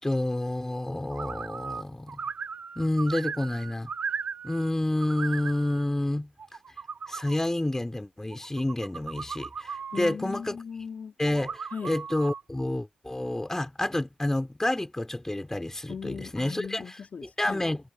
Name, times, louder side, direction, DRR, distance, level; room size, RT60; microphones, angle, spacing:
voice 1, 0.0-2.2 2.7-3.9 4.4-6.3 7.1-10.6 11.2-16.9 17.4-17.8, left 1 dB, 15° left, 4.7 m, -29 dB
sound 1, 1.1-1.8 2.1-4.7 5.0-5.8 6.4-7.4 8.3-10.1 11.2-12.4, right 5 dB, 50° right, 3.0 m, -37 dB
voice 2, 9.9-11.1 11.7-12.0 15.9-17.6, left 6 dB, 55° left, 2.3 m, -38 dB
supercardioid pair, 55°, 3 cm